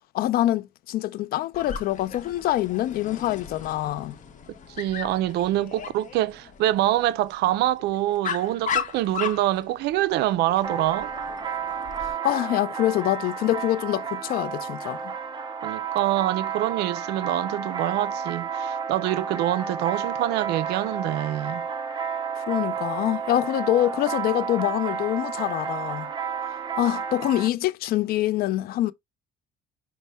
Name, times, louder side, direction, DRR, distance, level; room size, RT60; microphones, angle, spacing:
voice 1, 0.1-4.2 12.0-15.1 22.4-26.1 26.8-28.9, left 14 dB, 65° left, 0.4 m, -25 dB
Dog, 1.5-12.1, left 7 dB, 50° left, 0.8 m, -36 dB
voice 2, 4.8-11.1 15.6-21.7, right 14 dB, 80° right, 0.4 m, -25 dB
sound 1, 10.6-27.5, right 6 dB, 25° right, 0.6 m, -31 dB
5.3 x 2.1 x 3.4 m
cardioid pair, 110°, 17 cm